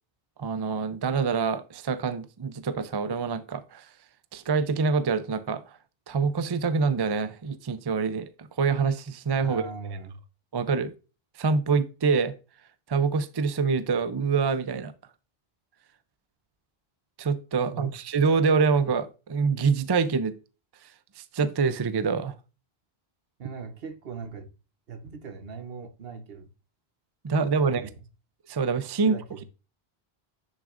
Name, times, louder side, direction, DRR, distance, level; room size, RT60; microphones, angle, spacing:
voice 1, 0.4-3.9 4.3-5.6 6.1-9.6 10.5-10.9 11.4-12.3 12.9-14.9 17.2-20.3 21.2-22.4 27.2-27.9 28.5-29.2, right 5 dB, 35° right, 0.4 m, -25 dB
voice 2, 9.4-10.2 17.7-17.9 23.4-24.5 24.9-26.5 27.6-28.0 29.0-29.4, right 5 dB, 65° right, 1.1 m, -40 dB
10.5 x 6.0 x 2.5 m
omnidirectional pair, 1.1 m